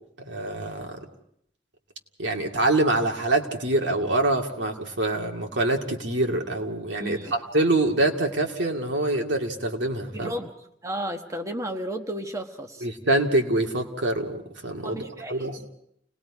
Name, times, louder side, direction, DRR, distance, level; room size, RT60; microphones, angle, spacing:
voice 1, 0.3-1.0 2.2-10.3 12.8-15.6, right 2 dB, 90° right, 2 dB, 2.3 m, -25 dB
voice 2, 7.0-7.3 10.1-10.5 10.8-12.9 14.8-15.7, right 1 dB, 20° right, 3 dB, 1.3 m, -33 dB
29.5 x 19.5 x 4.9 m, 0.71 s
head